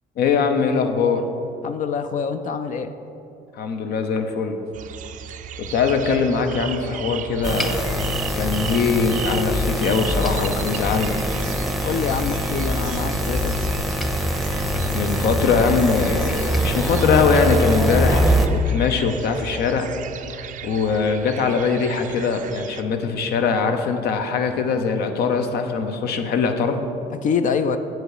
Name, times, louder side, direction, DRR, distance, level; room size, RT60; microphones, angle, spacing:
voice 1, 0.2-1.2 3.5-4.6 5.7-8.0 8.3-11.2 14.9-19.9 20.4-26.8, left 5 dB, 70° left, 6 dB, 0.9 m, -22 dB
voice 2, 1.6-2.9 11.8-13.6 27.2-27.8, left 6 dB, 50° left, 9 dB, 0.4 m, -25 dB
sound 1, 4.7-22.8, right 9 dB, 50° right, 0.4 m, -36 dB
sound 2, 7.4-18.5, equal, ahead, 0.7 m, -23 dB
7.8 x 7.7 x 4.9 m, 2.8 s
cardioid pair, 110°, 17 cm